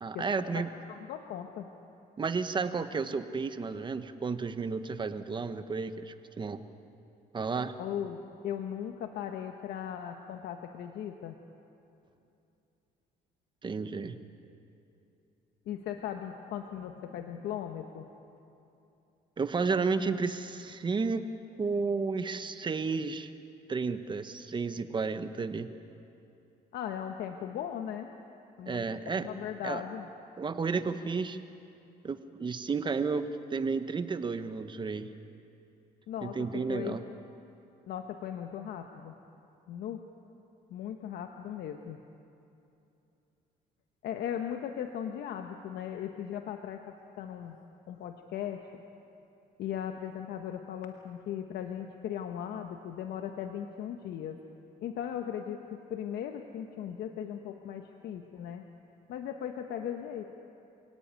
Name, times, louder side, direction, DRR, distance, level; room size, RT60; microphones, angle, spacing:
voice 1, 0.0-0.7 2.2-6.6 7.3-7.7 13.6-14.1 19.4-21.3 21.6-23.3 23.7-25.7 28.7-29.3 29.6-29.8 30.4-31.4 32.0-35.1 36.2-37.0, right 4 dB, 25° right, 10 dB, 1.3 m, -32 dB
voice 2, 0.9-1.7 7.8-11.3 15.6-18.1 26.7-28.1 28.6-30.1 36.1-37.0 37.9-39.1 39.7-40.1 40.7-42.0 44.0-47.6 47.9-48.6 49.6-54.4 54.8-58.6 59.1-60.3, left 9 dB, 75° left, 5 dB, 1.4 m, -38 dB
27.5 x 18.0 x 9.2 m, 2.7 s
cardioid pair, 110°, 17 cm